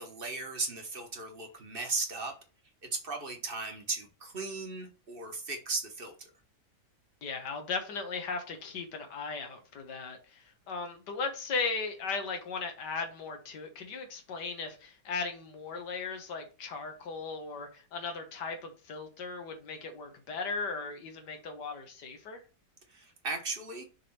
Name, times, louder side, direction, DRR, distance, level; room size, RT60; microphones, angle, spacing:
voice 1, 0.0-2.4 2.8-6.3 22.9-23.8, right 3 dB, 35° right, 1.3 m, -36 dB
voice 2, 7.2-22.4, left 4 dB, 85° left, 1.8 m, -37 dB
6.6 x 3.4 x 5.6 m
omnidirectional pair, 1.8 m